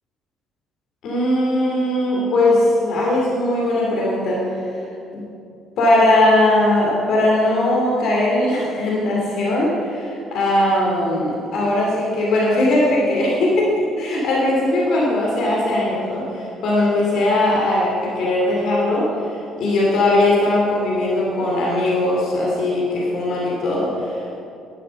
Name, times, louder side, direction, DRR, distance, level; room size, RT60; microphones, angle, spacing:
voice 1, 1.0-4.7 5.1-5.2 5.8-24.4, left 1 dB, 55° left, -4 dB, 2.6 m, -19 dB
11.5 x 11.0 x 5.4 m, 2.6 s
figure-of-eight pair, 45°, 0 cm